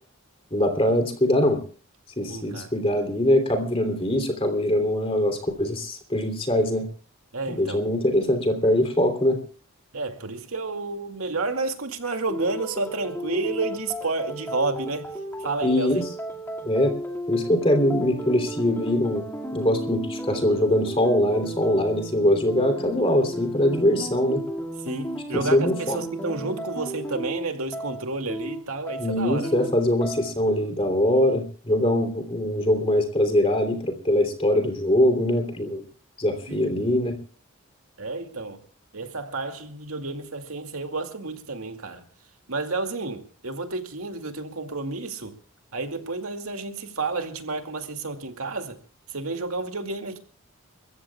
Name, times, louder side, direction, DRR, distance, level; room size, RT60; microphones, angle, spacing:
voice 1, 0.5-1.6 2.2-6.9 7.5-9.4 15.6-16.0 16.6-16.9 17.3-19.2 19.5-24.4 25.5-26.0 29.0-35.8 36.2-37.1, left 1 dB, 25° left, 3.1 m, -22 dB
voice 2, 2.3-2.7 7.3-7.8 9.9-16.0 24.8-29.5 36.5-36.7 38.0-38.6 38.9-42.0 42.5-45.4 45.7-48.8 49.1-50.2, right 3 dB, 80° right, 2.3 m, -31 dB
sound 1, 12.3-30.6, right 1 dB, 10° left, 2.1 m, -34 dB
29.5 x 15.0 x 2.3 m
head